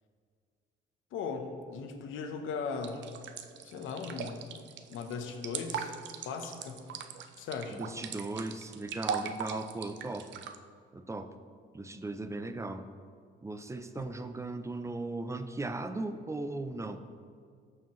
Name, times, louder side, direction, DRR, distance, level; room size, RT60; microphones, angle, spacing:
voice 1, 1.1-3.1 3.6-4.5 4.9-5.9 6.2-6.9 7.4-7.8 13.9-14.0, left 5 dB, 85° left, 6 dB, 0.9 m, -38 dB
sound 1, 2.8-10.6, right 7 dB, 65° right, 0.5 m, -39 dB
voice 2, 7.7-10.4 10.9-11.3 11.7-12.8 13.4-17.0, right 2 dB, 15° right, 9 dB, 0.5 m, -37 dB
14.0 x 4.8 x 3.1 m, 2.1 s
cardioid pair, 90°, 20 cm